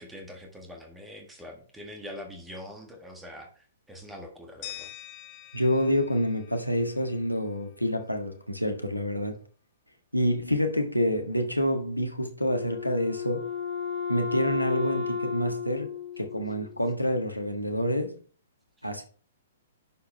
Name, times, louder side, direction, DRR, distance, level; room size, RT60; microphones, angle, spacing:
voice 1, 0.0-4.9 18.8-18.9, left 1 dB, 5° right, 1.6 m, -44 dB
sound 1, 4.6-7.5, left 13 dB, 30° left, 1.2 m, -45 dB
voice 2, 5.5-9.4 10.1-13.5 14.1-18.2 18.8-19.0, equal, 90° left, 1.4 m, -27 dB
Wind instrument woodwind instrument, 12.5-17.0, left 7 dB, 55° left, 2.7 m, -33 dB
11.0 x 4.8 x 3.2 m
figure-of-eight pair, 115°, 0 cm